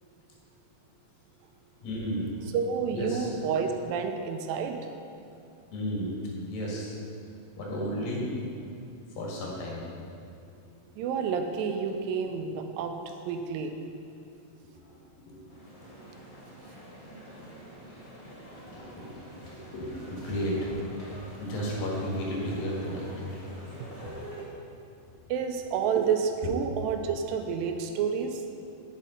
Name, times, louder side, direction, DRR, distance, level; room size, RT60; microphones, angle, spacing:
voice 1, 1.8-2.3 2.9-3.3 5.7-6.2 6.5-6.9 7.6-8.3 9.2-9.8 14.9-15.0 15.3-15.4 18.2-18.3 18.7-19.1 19.4-20.7 21.4-23.4 26.4-26.5, equal, 85° left, -4 dB, 3.6 m, -33 dB
voice 2, 2.5-4.8 10.9-13.0 13.2-13.8 25.3-28.4, right 6 dB, 90° right, 6 dB, 2.4 m, -29 dB
sound 1, 15.5-24.4, right 1 dB, 15° left, 1.7 m, -46 dB
8.5 x 7.4 x 5.2 m, 2.5 s
omnidirectional pair, 4.0 m